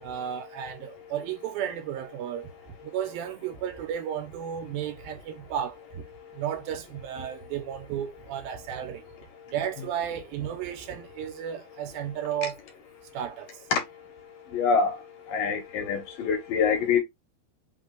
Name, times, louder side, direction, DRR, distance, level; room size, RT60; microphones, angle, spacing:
voice 1, 0.0-2.5 2.8-6.0 6.3-9.1 9.5-12.6 13.1-13.6, right 9 dB, 80° right, 2.6 m, -33 dB
voice 2, 14.5-15.0 15.3-17.0, left 5 dB, 70° left, 2.5 m, -25 dB
5.8 x 2.3 x 3.7 m
omnidirectional pair, 4.3 m